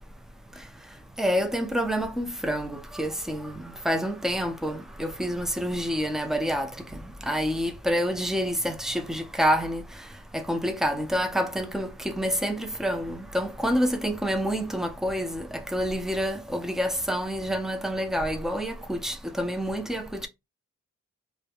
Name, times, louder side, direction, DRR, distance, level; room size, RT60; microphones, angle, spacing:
voice 1, 1.2-3.5 3.9-6.7 7.3-9.8 10.3-20.3, equal, ahead, 0.4 m, -27 dB
2.2 x 2.1 x 2.8 m
cardioid pair, 75°, 31 cm